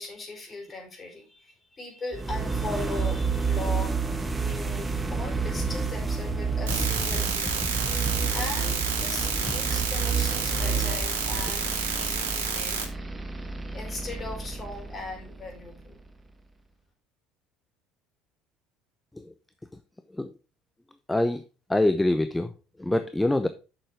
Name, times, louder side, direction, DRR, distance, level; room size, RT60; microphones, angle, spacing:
voice 1, 0.0-4.0 4.3-7.5 8.0-12.9 13.7-16.0, left 3 dB, 30° left, 1 dB, 5.0 m, -39 dB
sound 1, 2.1-16.0, right 5 dB, 20° right, 1.4 m, -30 dB
sound 2, 6.7-12.9, right 6 dB, 75° right, 1.6 m, -29 dB
voice 2, 21.1-21.4 21.7-22.5 22.8-23.5, left 1 dB, 10° left, 10 dB, 0.7 m, -24 dB
7.6 x 6.5 x 4.8 m, 0.32 s
hypercardioid pair, 65°, 0 cm